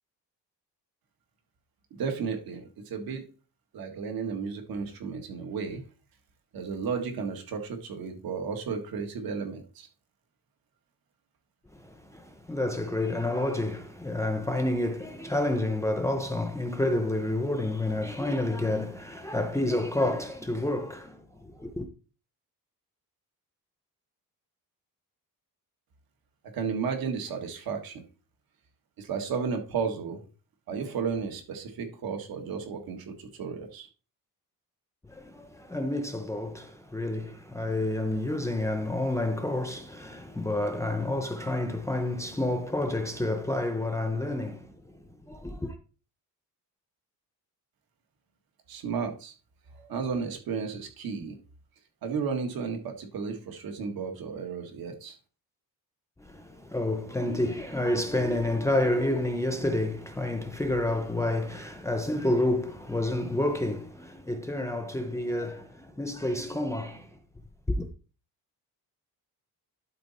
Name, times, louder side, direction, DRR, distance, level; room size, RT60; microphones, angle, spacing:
voice 1, 2.0-3.2 3.7-5.8 6.5-9.9 26.5-28.0 29.0-30.2 30.7-33.9 48.7-49.3 49.7-51.4 52.0-55.2, right 5 dB, 70° right, 1.8 m, -33 dB
voice 2, 11.7-21.9 35.1-45.7 56.2-67.2 67.7-67.9, left 1 dB, 10° left, 0.6 m, -29 dB
11.5 x 4.1 x 4.2 m
cardioid pair, 160°, 37 cm